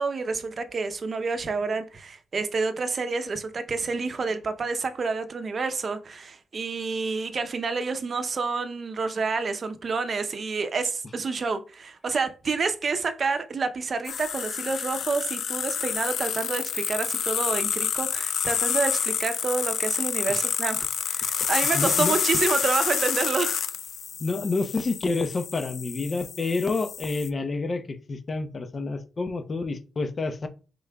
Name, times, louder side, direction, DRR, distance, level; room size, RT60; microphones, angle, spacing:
voice 1, 0.0-23.6, right 4 dB, 50° right, 0.6 m, -28 dB
sound 1, 14.0-27.3, left 7 dB, 70° left, 0.4 m, -28 dB
voice 2, 21.7-22.2 24.2-30.5, left 3 dB, 40° left, 0.7 m, -29 dB
4.8 x 3.8 x 2.2 m
cardioid pair, 75°, 0 cm